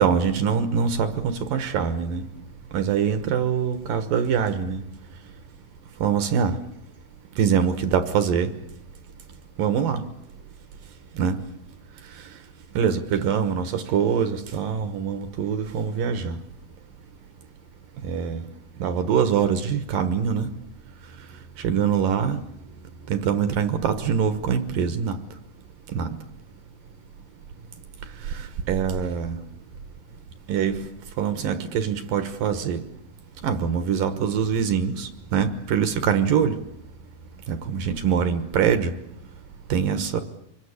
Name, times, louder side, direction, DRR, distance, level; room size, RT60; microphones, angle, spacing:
voice 1, 0.0-2.2 2.7-4.8 6.0-6.6 7.4-8.5 9.6-10.0 11.2-11.4 12.8-16.4 18.0-18.4 18.8-20.5 21.6-22.4 23.1-25.2 25.9-26.2 28.7-29.4 30.5-30.7 31.2-32.8 33.4-36.5 37.5-38.9 39.7-40.2, right 7 dB, 65° right, 2.6 m, -23 dB
25.5 x 22.0 x 8.3 m
omnidirectional pair, 4.7 m